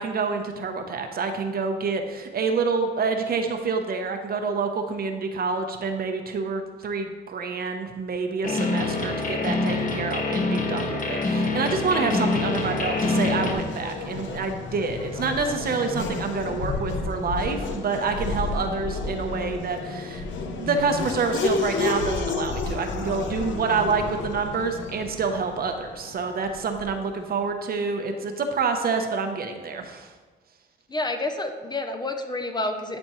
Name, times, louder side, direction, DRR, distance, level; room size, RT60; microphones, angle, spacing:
voice 1, 0.0-20.2 20.6-30.1, right 4 dB, 50° right, 5 dB, 0.8 m, -27 dB
sound 1, 8.4-13.5, left 3 dB, 40° left, 1.1 m, -25 dB
Race car auto racing / Accelerating revving vroom, 11.5-27.1, left 3 dB, 70° left, 0.8 m, -31 dB
voice 2, 30.9-33.0, left 2 dB, 20° left, 6 dB, 0.6 m, -29 dB
11.0 x 4.3 x 3.1 m, 1.4 s
cardioid pair, 90°, 20 cm